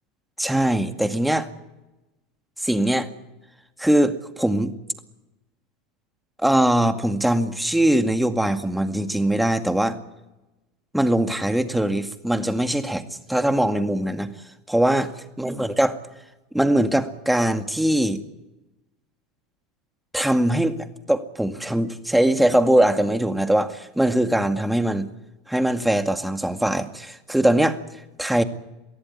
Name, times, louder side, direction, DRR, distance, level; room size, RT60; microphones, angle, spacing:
voice 1, 0.4-1.5 2.6-3.1 3.8-4.7 6.4-10.0 10.9-14.3 14.7-15.1 15.4-16.0 16.5-18.2 20.1-25.1 25.5-27.8 28.2-28.4, right 1 dB, 5° right, 7 dB, 2.1 m, -21 dB
24.0 x 16.5 x 9.8 m, 1.0 s
hypercardioid pair, 85°, 0 cm